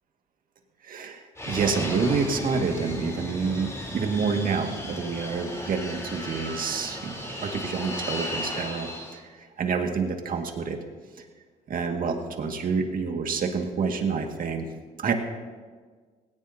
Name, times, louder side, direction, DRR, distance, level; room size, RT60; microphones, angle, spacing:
voice 1, 0.8-10.8 11.7-14.7 15.0-15.1, right 5 dB, 55° right, 3 dB, 2.0 m, -28 dB
Fixed-wing aircraft airplane, 1.4-9.2, left 1 dB, 15° left, 3.7 m, -35 dB
18.5 x 18.0 x 2.8 m, 1.5 s
cardioid pair, 80°, 17 cm